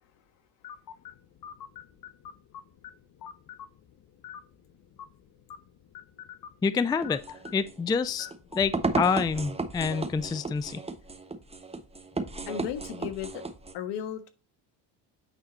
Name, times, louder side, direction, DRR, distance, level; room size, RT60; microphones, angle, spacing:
sound 1, 0.6-10.2, left 9 dB, 45° left, 1.1 m, -48 dB
voice 1, 6.6-8.3 8.6-10.8, left 5 dB, 10° left, 0.4 m, -27 dB
sound 2, 7.0-13.7, right 3 dB, 15° right, 1.1 m, -34 dB
voice 2, 12.5-13.4 13.7-14.3, left 9 dB, 65° left, 1.5 m, -35 dB
9.0 x 4.1 x 4.1 m
supercardioid pair, 85°, 46 cm